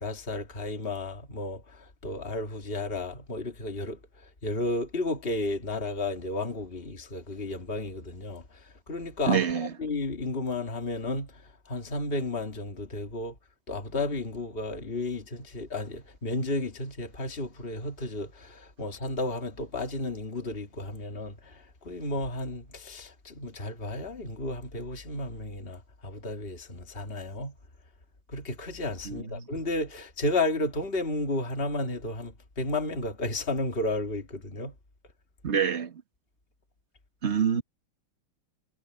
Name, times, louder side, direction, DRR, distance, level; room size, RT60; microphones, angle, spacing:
voice 1, 0.0-4.0 4.4-8.4 8.9-11.3 11.7-13.4 13.7-27.5 28.3-34.7, left 2 dB, 25° left, 2.6 m, -33 dB
voice 2, 9.3-9.7 29.1-29.5 35.4-36.0 37.2-37.6, right 7 dB, 35° right, 1.8 m, -27 dB
omnidirectional pair, 2.4 m